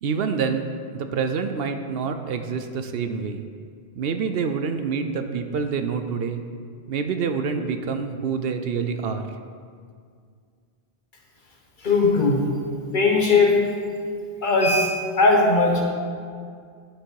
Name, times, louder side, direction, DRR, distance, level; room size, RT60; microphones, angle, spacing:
voice 1, 0.0-3.5 4.0-6.4 6.9-9.3, right 5 dB, 70° right, 7 dB, 0.8 m, -27 dB
voice 2, 11.8-12.5 12.9-13.6 14.4-15.8, left 3 dB, 50° left, 0 dB, 1.3 m, -19 dB
9.9 x 6.4 x 4.6 m, 2.1 s
omnidirectional pair, 1.1 m